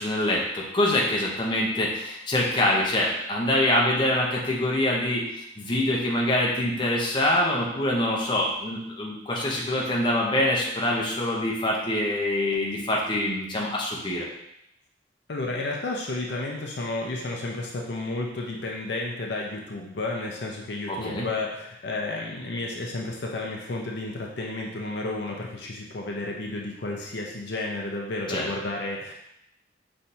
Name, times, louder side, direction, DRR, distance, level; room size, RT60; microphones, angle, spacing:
voice 1, 0.0-5.2 5.6-14.3 20.9-21.3 28.3-28.5, left 1 dB, 25° left, -3 dB, 0.8 m, -25 dB
voice 2, 15.3-29.1, left 2 dB, 65° left, -1 dB, 0.6 m, -32 dB
5.7 x 3.3 x 2.7 m, 0.79 s
head